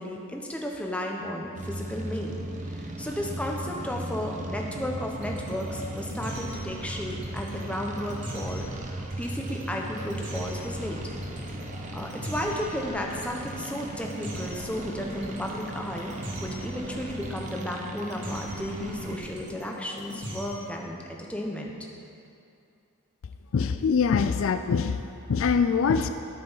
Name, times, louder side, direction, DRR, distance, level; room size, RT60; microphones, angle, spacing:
voice 1, 0.0-2.4 2.7-8.6 9.2-11.0 11.9-16.1 16.4-21.7, left 1 dB, 5° left, 0 dB, 0.9 m, -33 dB
sound 1, 1.5-19.2, right 1 dB, 35° right, 0.8 m, -37 dB
sound 2, 5.1-20.7, right 1 dB, 55° right, 2.1 m, -41 dB
voice 2, 23.5-26.1, left 5 dB, 65° left, 9 dB, 0.4 m, -24 dB
13.0 x 5.1 x 5.6 m, 2.6 s
head